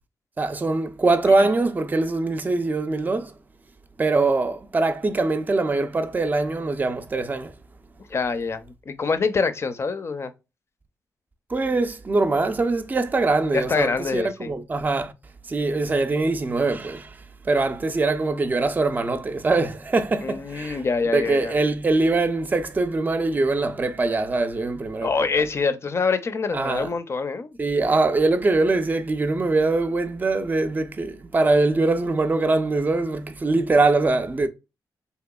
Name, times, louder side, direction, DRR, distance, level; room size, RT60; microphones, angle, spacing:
voice 1, 0.4-3.3 4.0-7.5 11.5-15.1 15.5-17.1 17.5-20.8 21.1-25.1 26.5-26.9 27.6-34.5, right 3 dB, 25° right, 0.4 m, -22 dB
voice 2, 8.1-10.3 13.5-14.5 20.2-21.6 25.0-27.6, left 4 dB, 40° left, 0.5 m, -25 dB
3.2 x 2.9 x 2.3 m
cardioid pair, 100°, 7 cm